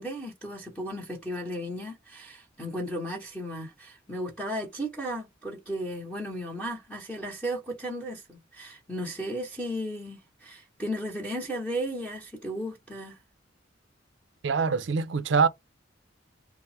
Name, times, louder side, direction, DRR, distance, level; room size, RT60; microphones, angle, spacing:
voice 1, 0.0-13.2, equal, 5° left, 0.8 m, -35 dB
voice 2, 14.4-15.5, right 5 dB, 65° right, 0.5 m, -24 dB
3.4 x 2.0 x 4.2 m
head